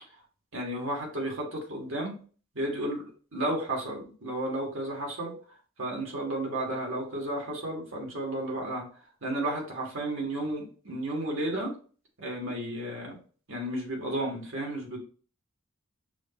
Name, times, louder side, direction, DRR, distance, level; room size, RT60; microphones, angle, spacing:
voice 1, 0.5-2.2 2.5-8.8 9.2-11.7 12.2-13.2 13.5-15.0, right 1 dB, 65° right, -1 dB, 1.6 m, -33 dB
6.3 x 2.7 x 2.9 m, 0.40 s
head